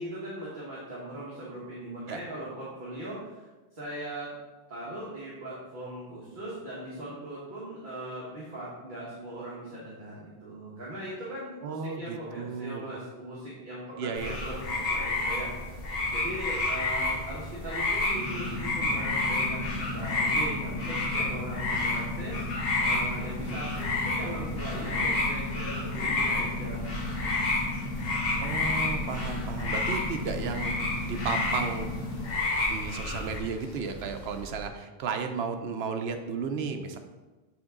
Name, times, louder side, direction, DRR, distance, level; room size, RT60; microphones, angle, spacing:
voice 1, 0.0-4.3 4.7-15.8 16.1-22.5 22.8-26.8, right 1 dB, 50° right, -8 dB, 1.6 m, -40 dB
voice 2, 11.6-12.9 14.0-14.4 28.4-30.7 31.0-32.0 32.6-37.0, right 5 dB, 85° right, 7 dB, 0.9 m, -34 dB
sound 1, 14.1-33.4, left 2 dB, 65° left, 1.4 m, -30 dB
sound 2, 18.1-32.3, left 2 dB, 25° right, 2.1 m, -36 dB
sound 3, 22.9-34.7, left 1 dB, 50° left, 1.3 m, -46 dB
8.8 x 3.6 x 3.8 m, 1.2 s
omnidirectional pair, 1.0 m